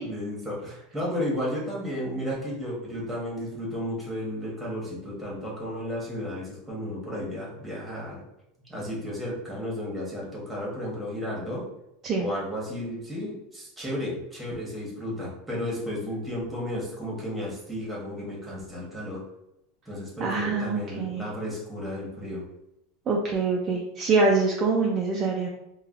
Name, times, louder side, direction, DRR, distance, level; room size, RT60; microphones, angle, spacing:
voice 1, 0.0-8.2 8.7-11.6 12.2-19.2 19.9-22.4, left 1 dB, 5° right, -5 dB, 1.1 m, -33 dB
voice 2, 20.2-21.3 23.1-25.5, right 3 dB, 30° right, -1 dB, 0.4 m, -25 dB
3.1 x 2.3 x 2.4 m, 0.84 s
supercardioid pair, 135°, 0 cm